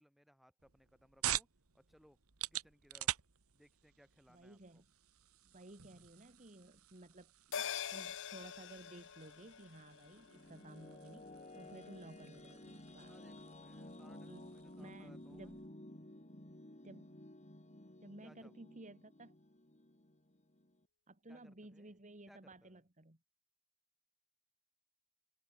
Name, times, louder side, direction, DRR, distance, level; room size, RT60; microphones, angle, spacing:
voice 1, 0.0-1.5 1.7-2.2 2.5-3.2 3.5-4.8 12.9-15.6 18.2-18.6 21.3-22.0 22.3-22.8, equal, ahead, 7.4 m, -66 dB
sound 1, 0.6-15.7, right 12 dB, 80° right, 1.7 m, -47 dB
voice 2, 4.3-4.8 5.4-11.3 11.5-13.2 14.3-14.5 14.8-15.6 16.8-17.2 18.0-19.4 21.1-23.2, right 1 dB, 35° right, 2.6 m, -55 dB
sound 2, 7.5-12.2 12.6-12.7, left 8 dB, 60° left, 1.2 m, -46 dB
sound 3, 10.0-20.8, left 1 dB, 35° left, 4.2 m, -54 dB
head